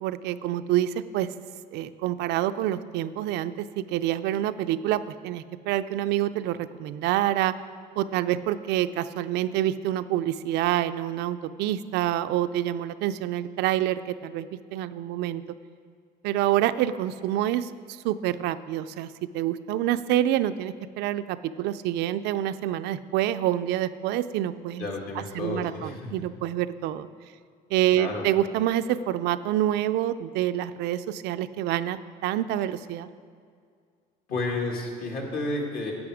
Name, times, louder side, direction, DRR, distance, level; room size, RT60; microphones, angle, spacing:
voice 1, 0.0-1.3 1.7-7.5 8.0-14.5 14.7-15.4 16.2-19.1 19.3-24.9 25.3-27.1 27.7-33.1, right 12 dB, 85° right, 12 dB, 0.4 m, -27 dB
voice 2, 24.8-26.1 27.9-28.2 34.3-35.9, left 2 dB, 65° left, 0 dB, 2.0 m, -31 dB
11.0 x 7.8 x 4.9 m, 2.2 s
cardioid pair, 110°, 17 cm